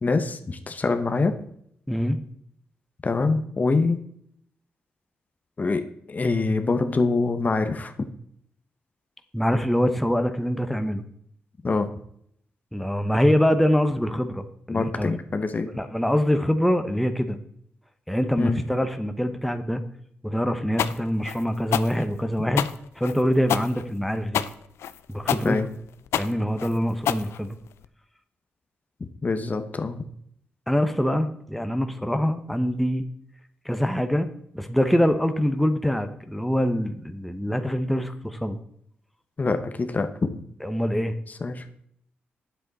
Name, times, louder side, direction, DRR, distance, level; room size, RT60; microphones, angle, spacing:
voice 1, 0.0-1.4 3.0-4.0 5.6-7.9 11.6-11.9 14.7-15.7 18.4-18.6 25.4-25.7 29.0-30.0 39.4-40.4 41.4-41.7, left 3 dB, 40° left, 7 dB, 1.0 m, -25 dB
voice 2, 1.9-2.2 9.3-11.0 12.7-15.1 15.6-17.4 18.1-19.8 20.2-22.7 22.9-24.4 25.1-25.6 26.1-27.6 30.7-33.1 33.6-34.3 34.5-38.6 40.6-41.1, equal, ahead, 7 dB, 0.9 m, -24 dB
sound 1, 20.8-27.9, left 10 dB, 85° left, 0.4 m, -28 dB
8.8 x 7.9 x 4.2 m, 0.69 s
cardioid pair, 60°, 4 cm